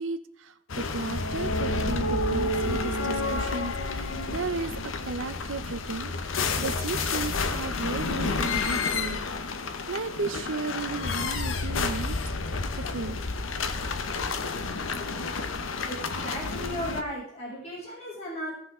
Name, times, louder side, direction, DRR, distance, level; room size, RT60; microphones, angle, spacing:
voice 1, 0.0-6.1 6.6-9.2 9.9-12.2 12.7-13.2, right 3 dB, 70° right, 11 dB, 0.7 m, -34 dB
sound 1, 0.7-17.0, left 3 dB, 75° left, 0.9 m, -30 dB
voice 2, 15.9-18.5, equal, 30° left, -6 dB, 3.8 m, -36 dB
16.5 x 5.9 x 3.8 m, 0.70 s
head